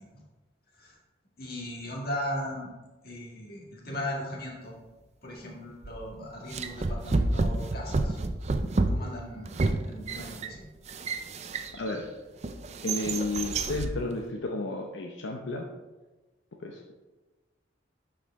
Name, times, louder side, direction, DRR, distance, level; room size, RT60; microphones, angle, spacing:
voice 1, 1.4-2.7 3.0-4.7 5.2-8.2 8.9-10.6, left 1 dB, 55° left, -2 dB, 1.9 m, -37 dB
sound 1, 5.8-6.1 6.5-12.0 12.4-14.0, right 2 dB, 35° right, 0.5 m, -29 dB
voice 2, 11.7-12.1 12.8-15.7 16.6-16.9, left 2 dB, 85° left, 2 dB, 0.7 m, -32 dB
11.0 x 4.9 x 3.6 m, 1.2 s
head